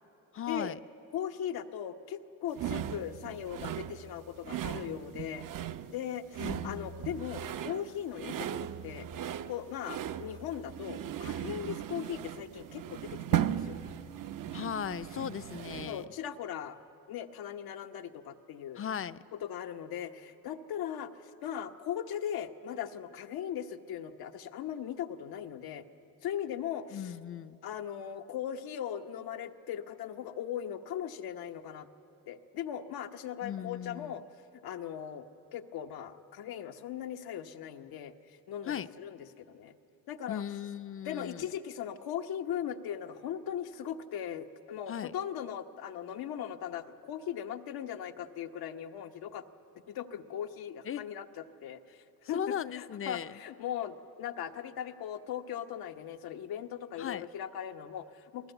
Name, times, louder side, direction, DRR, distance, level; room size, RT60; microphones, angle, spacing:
voice 1, 0.3-0.8 6.4-7.0 14.5-16.0 18.8-19.2 26.9-27.6 33.4-34.2 38.7-38.9 40.3-41.5 44.9-45.1 50.9-51.1 52.3-53.4 57.0-57.3, left 9 dB, 35° left, 14 dB, 0.5 m, -37 dB
voice 2, 1.1-5.5 5.9-9.1 9.5-13.8 15.8-16.8 17.1-18.8 19.3-25.8 26.2-27.1 27.6-31.9 32.3-34.2 34.6-39.7 40.1-40.4 41.0-49.4 49.9-58.5, left 9 dB, 85° left, 6 dB, 1.1 m, -39 dB
sound 1, 2.6-16.0, right 10 dB, 60° right, 0.8 m, -37 dB
28.5 x 18.5 x 8.0 m, 2.9 s
cardioid pair, 105°, 36 cm